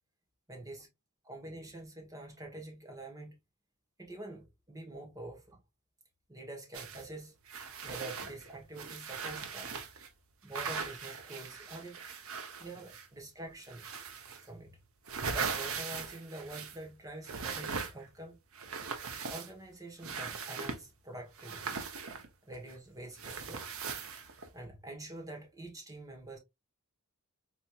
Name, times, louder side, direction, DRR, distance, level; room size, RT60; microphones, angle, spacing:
voice 1, 0.5-0.9 1.2-3.4 4.0-5.6 6.3-7.3 7.8-9.8 10.4-12.0 12.6-13.9 14.4-14.8 15.3-18.4 19.3-21.7 22.5-23.7 24.5-26.4, right 1 dB, 15° right, 1.1 m, -46 dB
sound 1, 6.7-7.0 7.5-10.1 10.5-13.2 13.6-14.5 14.8-16.9 17.2-18.2 18.5-19.7 20.0-20.8 21.4-22.7 23.2-24.5, right 5 dB, 65° right, 0.7 m, -40 dB
4.0 x 2.9 x 2.3 m
head